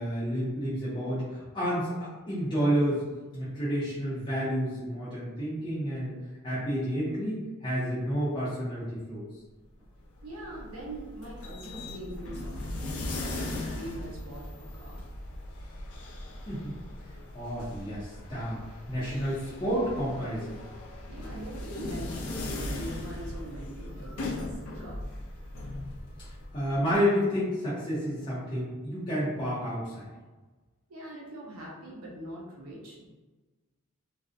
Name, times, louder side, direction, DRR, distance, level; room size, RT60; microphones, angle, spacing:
voice 1, 0.0-3.0 3.3-6.2 6.4-9.2 16.5-16.8 17.3-18.6 18.9-20.6 26.5-30.1, equal, 20° left, -11 dB, 0.6 m, -30 dB
sound 1, 10.0-27.0, left 2 dB, 70° left, 0.4 m, -39 dB
voice 2, 10.2-13.3 13.7-15.0 21.1-25.0 30.9-33.1, right 1 dB, 85° right, -4 dB, 0.6 m, -42 dB
2.5 x 2.0 x 2.4 m, 1.2 s
head